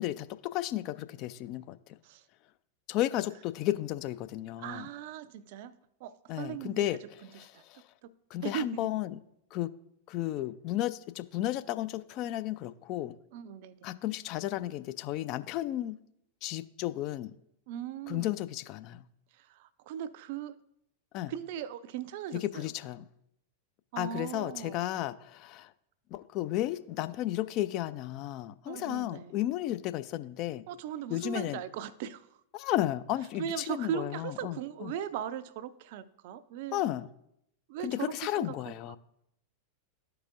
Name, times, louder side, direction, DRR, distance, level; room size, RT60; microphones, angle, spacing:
voice 1, 0.0-2.0 2.9-4.9 6.3-7.0 7.3-7.8 8.3-9.2 9.5-9.7 10.1-13.1 13.8-16.0 16.4-17.3 18.1-19.0 21.1-21.3 22.4-23.0 24.0-25.7 26.1-30.6 31.1-31.6 32.5-34.9 36.7-37.1 37.8-39.0, left 14 dB, 40° left, 0.4 m, -33 dB
voice 2, 4.6-5.8 6.0-6.8 7.5-7.6 8.0-8.1 8.4-8.9 13.3-13.7 17.7-18.3 19.3-20.6 21.3-22.7 23.9-24.8 28.7-29.3 30.7-32.3 33.4-36.8 37.7-39.0, right 9 dB, 50° right, 0.4 m, -38 dB
13.0 x 4.8 x 2.5 m
figure-of-eight pair, 90°, 0 cm